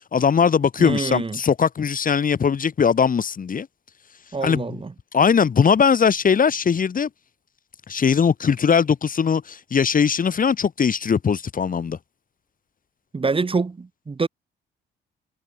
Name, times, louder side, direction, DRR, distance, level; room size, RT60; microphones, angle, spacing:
voice 1, 0.1-3.7 4.4-4.6 5.1-7.1 7.9-12.0, left 6 dB, 45° left, 3.4 m, -20 dB
voice 2, 0.8-1.4 4.3-4.9 13.1-14.3, right 4 dB, 25° right, 2.2 m, -25 dB
cardioid pair, 90°, 20 cm